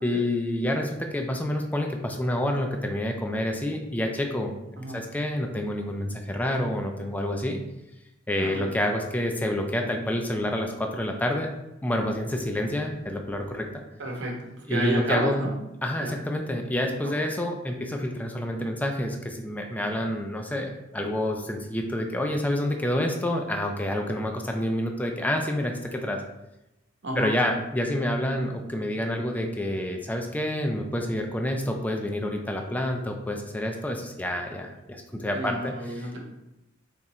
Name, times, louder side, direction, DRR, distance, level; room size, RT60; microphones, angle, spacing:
voice 1, 0.0-4.6 4.9-7.6 8.3-11.5 11.8-13.7 14.7-15.4 15.8-26.2 27.2-36.2, left 1 dB, 10° left, 3 dB, 0.4 m, -28 dB
voice 2, 8.4-8.7 14.0-15.5 16.0-16.2 17.0-17.1 27.0-27.3 35.3-36.2, right 1 dB, 65° right, 0 dB, 1.0 m, -31 dB
3.7 x 2.9 x 4.1 m, 0.92 s
head